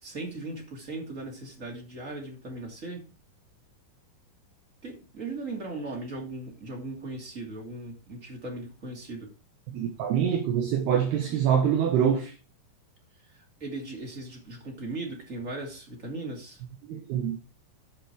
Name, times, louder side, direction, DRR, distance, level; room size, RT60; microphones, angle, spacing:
voice 1, 0.0-3.1 4.8-9.3 13.2-16.6, right 2 dB, 25° right, 1.8 m, -38 dB
voice 2, 9.7-12.3 16.9-17.4, right 8 dB, 70° right, 2.7 m, -25 dB
11.5 x 5.9 x 4.7 m
omnidirectional pair, 5.6 m